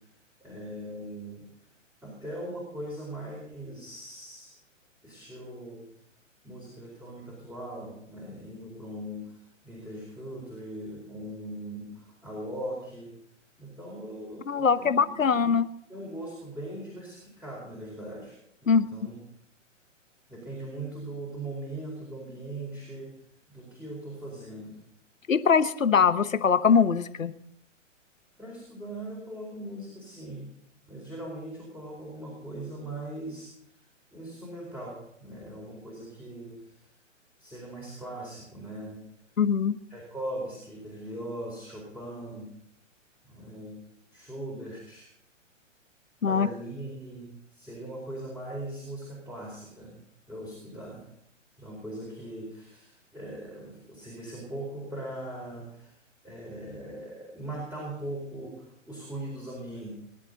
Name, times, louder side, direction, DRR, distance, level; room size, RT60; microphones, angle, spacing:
voice 1, 0.4-1.4 2.0-4.5 5.0-5.8 6.4-9.4 9.6-13.1 13.6-15.5 15.9-18.4 18.6-19.1 20.3-23.1 23.5-24.8 28.4-30.6 30.9-33.5 34.1-36.7 37.4-39.0 39.9-42.5 43.2-43.8 44.1-45.1 46.2-50.0 50.3-51.0 51.6-56.0 56.2-59.9, right 1 dB, 5° right, -4 dB, 4.3 m, -40 dB
voice 2, 14.5-15.6 18.7-18.8 25.3-27.3 39.4-39.8 46.2-46.5, left 6 dB, 85° left, 14 dB, 1.1 m, -22 dB
21.5 x 11.5 x 4.0 m, 0.70 s
hypercardioid pair, 130°, 39 cm